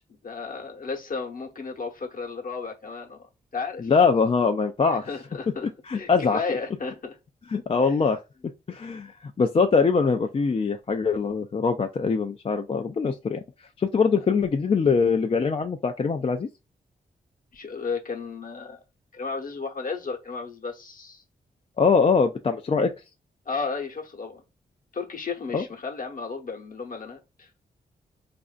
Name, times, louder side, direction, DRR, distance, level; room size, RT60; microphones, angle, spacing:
voice 1, 0.2-3.2 3.5-3.9 4.9-7.2 7.8-8.1 17.5-18.8 19.1-21.2 23.5-24.4 24.9-27.5, left 4 dB, 55° left, 1.0 m, -34 dB
voice 2, 3.8-5.1 5.9-6.4 7.5-8.2 8.7-13.4 13.8-16.5 21.8-22.9 25.5-25.6, left 5 dB, 35° left, 0.4 m, -23 dB
4.1 x 2.5 x 2.4 m
cardioid pair, 60°, 18 cm